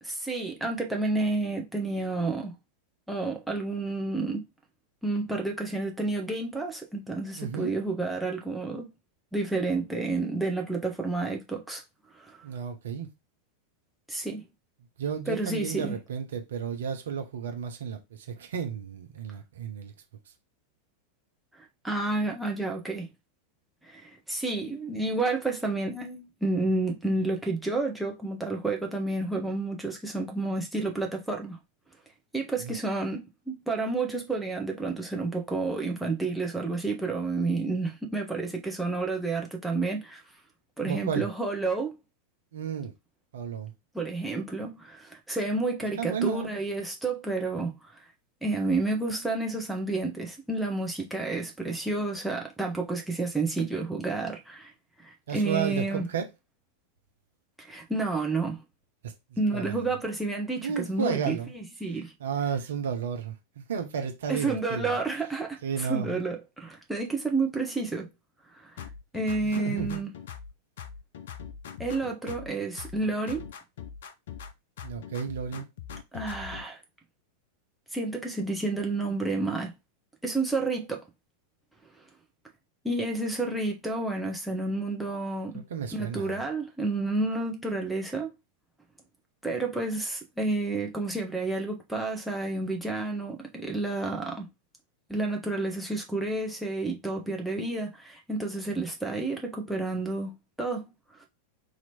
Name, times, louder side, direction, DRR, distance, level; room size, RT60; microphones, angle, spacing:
voice 1, 0.0-2.5 3.1-4.4 5.0-8.9 9.3-11.8 12.2-12.5 14.1-14.4 15.3-16.0 21.8-23.1 23.8-31.6 32.3-40.2 40.8-41.9 43.9-47.8 48.4-54.7 55.0-56.0 57.6-58.6 59.4-62.1 64.3-68.1 68.5-68.7 69.1-70.1 71.8-73.5 76.1-76.8 77.9-79.7 80.2-81.0 82.8-85.6 85.9-88.3 89.4-94.5 95.1-100.9, right 3 dB, 5° right, 0.9 m, -30 dB
voice 2, 7.4-7.7 12.4-13.1 15.0-19.9 32.6-32.7 40.8-41.3 42.5-42.9 43.3-43.7 46.0-46.6 55.3-56.3 59.0-59.1 59.5-59.8 60.6-61.5 62.2-64.9 65.6-66.2 69.4-70.0 74.8-75.7 85.5-86.4, right 7 dB, 60° right, 0.8 m, -33 dB
sound 1, 68.8-70.5 70.8-72.5 72.8-74.5 74.8-76.6, left 8 dB, 60° left, 0.5 m, -42 dB
3.0 x 2.8 x 4.3 m
figure-of-eight pair, 90°, 0 cm